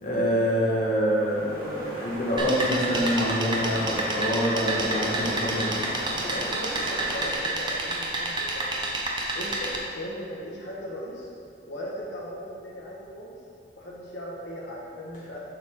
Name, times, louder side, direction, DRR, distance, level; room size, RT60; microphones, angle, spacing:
voice 1, 0.0-5.9, equal, 45° left, -6 dB, 1.5 m, -26 dB
sound 1, 0.9-7.3, equal, 50° right, 1.5 m, -37 dB
sound 2, 2.4-9.8, right 2 dB, 25° right, 0.7 m, -29 dB
voice 2, 4.7-5.3 5.9-8.9 9.3-11.3 11.7-13.3 13.8-15.4, equal, 85° left, -5 dB, 1.4 m, -38 dB
7.3 x 6.1 x 3.7 m, 2.6 s
head